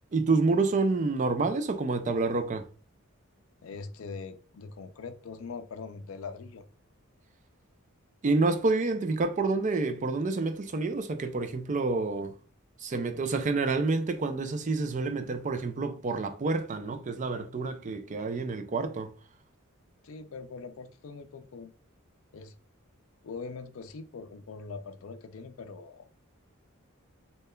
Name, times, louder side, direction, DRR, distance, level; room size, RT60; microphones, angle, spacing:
voice 1, 0.1-2.6 8.2-12.3 12.8-19.1, right 3 dB, 35° right, 0.4 m, -28 dB
voice 2, 3.6-6.7 20.0-21.7 22.3-22.5 23.2-26.1, left 4 dB, 70° left, 0.4 m, -42 dB
6.6 x 2.2 x 2.2 m
head